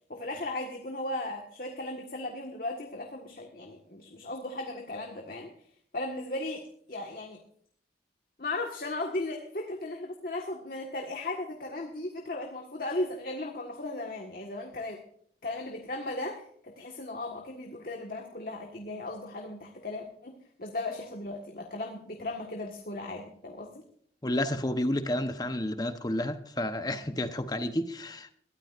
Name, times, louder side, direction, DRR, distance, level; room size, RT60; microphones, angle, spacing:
voice 1, 0.1-5.5 5.9-6.6 6.9-7.4 8.4-15.0 15.4-23.8, left 2 dB, 55° left, 1.6 m, -36 dB
voice 2, 24.2-28.3, left 1 dB, 20° left, 1.0 m, -31 dB
21.5 x 14.0 x 2.6 m
head